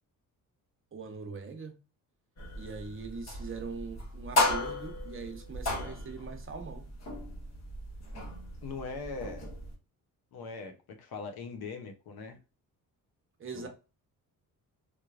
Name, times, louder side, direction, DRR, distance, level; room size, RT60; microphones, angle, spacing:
voice 1, 0.9-1.8 2.6-6.9 13.4-13.7, right 4 dB, 35° right, 0.8 m, -41 dB
sound 1, 2.4-9.7, left 2 dB, 45° left, 0.9 m, -35 dB
voice 2, 8.6-9.5 10.3-12.4 13.5-13.7, left 4 dB, 70° left, 0.8 m, -41 dB
3.2 x 2.1 x 2.4 m
cardioid pair, 95°, 38 cm